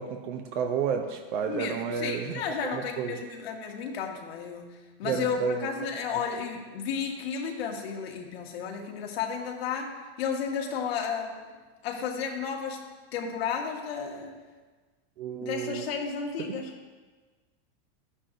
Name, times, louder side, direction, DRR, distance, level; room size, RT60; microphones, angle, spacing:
voice 1, 0.0-2.4 2.7-3.2 5.0-5.9 6.1-6.2 15.2-15.9 16.4-16.6, right 6 dB, 55° right, 4 dB, 0.7 m, -31 dB
voice 2, 1.5-4.7 5.0-11.4 11.8-12.8 13.1-14.3 15.4-16.7, left 6 dB, 75° left, 1 dB, 1.7 m, -33 dB
13.0 x 9.6 x 2.6 m, 1.3 s
supercardioid pair, 175°, 31 cm